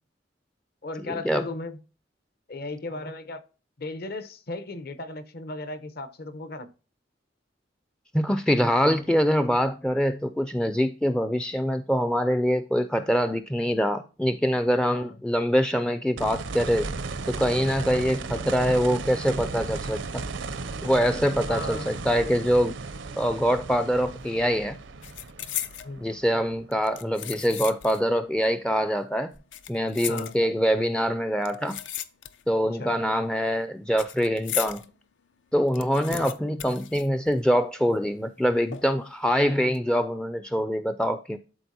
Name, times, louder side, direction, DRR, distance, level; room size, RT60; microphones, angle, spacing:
voice 1, 0.8-1.8 2.5-3.4 3.8-6.7 14.9-15.2 17.9-18.1 21.5-21.9 25.8-26.1 30.1-30.4 32.8-32.9 36.1-36.3, left 2 dB, 60° left, 0.9 m, -36 dB
voice 2, 8.1-16.9 17.3-20.2 20.8-22.8 23.2-24.8 26.0-29.3 29.7-31.8 32.5-34.9 35.5-41.4, equal, 5° left, 0.3 m, -24 dB
sound 1, 16.2-27.1 29.4-29.5, right 3 dB, 85° right, 0.7 m, -35 dB
sound 2, 24.0-24.3 24.5-25.9 26.7-28.1 28.4-28.5 29.3-30.7 31.4-32.6 32.9-34.9 35.3-35.4 35.5-37.7 37.9-38.0 38.7-39.1 39.6-39.8, left 11 dB, 80° left, 0.6 m, -36 dB
12.5 x 4.1 x 2.7 m
head